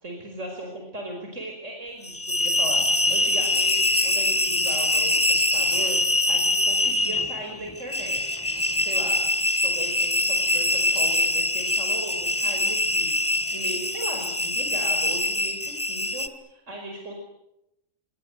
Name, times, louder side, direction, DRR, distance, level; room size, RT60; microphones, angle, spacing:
voice 1, 0.0-8.4 8.7-9.2 9.6-13.2 13.5-17.1, right 1 dB, 65° right, 2 dB, 5.3 m, -37 dB
sound 1, 2.0-16.3, left 2 dB, 10° left, 1.4 m, -24 dB
29.5 x 23.5 x 8.0 m, 0.86 s
omnidirectional pair, 1.4 m